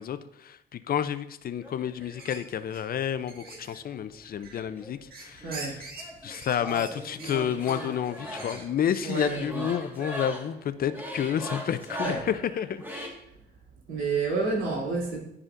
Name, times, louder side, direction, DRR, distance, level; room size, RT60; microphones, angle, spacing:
voice 1, 0.0-5.5 6.2-12.8, left 9 dB, 50° left, 12 dB, 0.4 m, -30 dB
sound 1, 1.6-2.5 3.3-4.5 4.7-13.1, equal, 10° right, 1.6 m, -40 dB
sound 2, 1.9-2.4 2.7-2.8 3.3-3.8 4.2-4.8 5.1-9.5, right 3 dB, 50° right, 1.7 m, -45 dB
voice 2, 5.4-5.8 9.0-9.6 12.0-12.2 13.9-15.2, right 4 dB, 80° right, -4 dB, 2.5 m, -29 dB
11.0 x 4.9 x 2.5 m, 0.82 s
cardioid pair, 90°, 20 cm